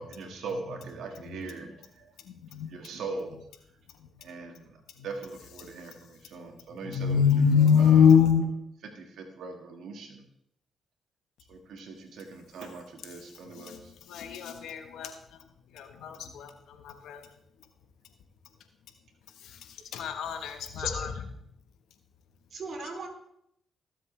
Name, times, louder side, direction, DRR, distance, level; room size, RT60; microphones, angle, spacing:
voice 1, 0.0-1.7 2.7-3.4 4.2-4.7 5.0-7.2 7.8-8.1 9.0-10.2 11.5-13.8, right 3 dB, 75° right, 3 dB, 1.9 m, -40 dB
voice 2, 6.8-8.4 13.7-13.8 14.1-15.1 15.8-16.5 16.8-17.2 19.9-21.1, left 7 dB, 80° left, 7 dB, 1.3 m, -23 dB
voice 3, 20.8-21.1 22.5-23.1, right 3 dB, 60° right, 2 dB, 3.1 m, -38 dB
20.0 x 7.5 x 3.3 m, 0.75 s
supercardioid pair, 55°, 0 cm